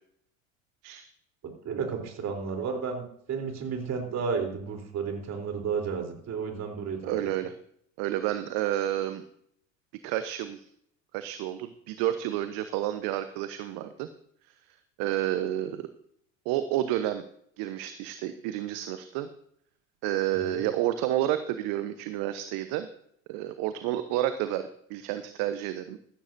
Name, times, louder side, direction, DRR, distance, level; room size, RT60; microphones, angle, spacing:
voice 1, 1.6-7.2 20.5-20.6, right 5 dB, 40° right, 4 dB, 3.6 m, -32 dB
voice 2, 7.0-7.5 8.0-9.2 10.0-10.6 11.1-14.1 15.0-15.9 16.4-17.2 17.6-19.3 20.0-22.9 23.3-26.0, right 13 dB, 55° right, 11 dB, 1.0 m, -30 dB
15.0 x 13.5 x 2.7 m, 0.67 s
hypercardioid pair, 75°, 40 cm